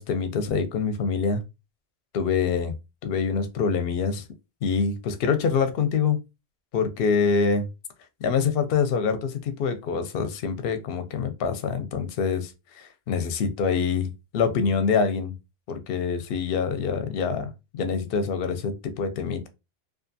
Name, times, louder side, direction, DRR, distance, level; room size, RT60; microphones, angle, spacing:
voice 1, 0.0-1.4 2.1-2.7 3.0-4.2 4.6-6.2 6.7-7.7 8.2-15.3 15.7-17.5 17.8-19.5, left 5 dB, 65° left, 0.7 m, -25 dB
2.5 x 2.3 x 2.5 m
omnidirectional pair, 1.1 m